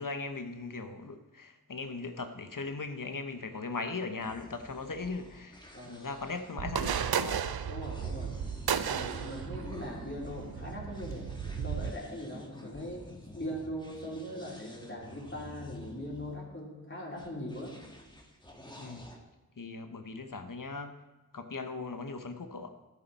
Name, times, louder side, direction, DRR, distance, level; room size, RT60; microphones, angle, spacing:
voice 1, 0.0-5.6 5.8-7.5 18.7-19.1 19.6-21.0 21.3-22.7, left 3 dB, 60° left, 8 dB, 0.9 m, -39 dB
sound 1, 4.2-16.3 17.1-19.2, equal, 10° left, 1.6 m, -50 dB
voice 2, 5.7-6.1 7.7-8.4 8.7-13.0 13.3-17.7, equal, 30° left, -3 dB, 3.3 m, -41 dB
sound 2, 6.6-11.9, right 8 dB, 85° right, 0.5 m, -34 dB
13.5 x 8.3 x 4.1 m, 1.1 s
wide cardioid pair, 50°, 37 cm